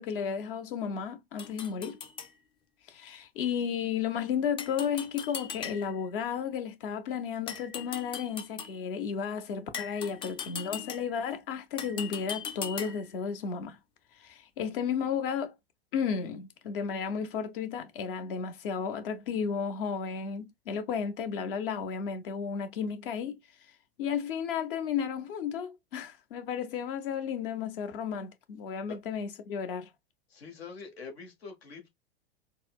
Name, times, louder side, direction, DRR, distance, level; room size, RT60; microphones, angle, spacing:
voice 1, 0.0-2.0 2.9-13.8 14.2-15.5 15.9-23.4 24.0-29.9, left 7 dB, 60° left, 0.9 m, -33 dB
sound 1, 1.4-2.3 4.6-6.1 7.5-8.8 9.7-11.3 11.8-13.2, left 7 dB, 15° left, 0.4 m, -40 dB
voice 2, 30.3-31.9, left 5 dB, 80° left, 1.2 m, -44 dB
4.1 x 2.1 x 2.3 m
hypercardioid pair, 95°, 31 cm